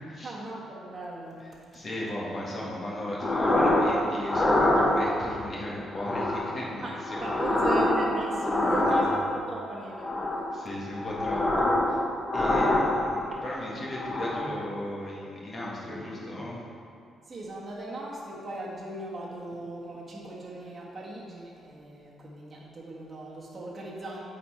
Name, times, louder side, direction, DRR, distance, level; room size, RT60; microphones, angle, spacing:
voice 1, 0.2-1.5 6.8-10.1 17.2-24.2, right 2 dB, 30° right, -5 dB, 1.4 m, -38 dB
voice 2, 1.7-7.3 8.8-9.1 10.5-12.0 12.3-16.6, left 1 dB, 40° left, -5 dB, 1.7 m, -36 dB
sound 1, 3.2-3.9 4.3-5.3 5.9-6.6 7.0-9.4 9.9-10.6 10.9-12.0 12.2-13.4 13.9-14.6, left 1 dB, 20° left, 0.9 m, -25 dB
8.3 x 4.3 x 4.3 m, 2.4 s
cardioid pair, 90°, 0 cm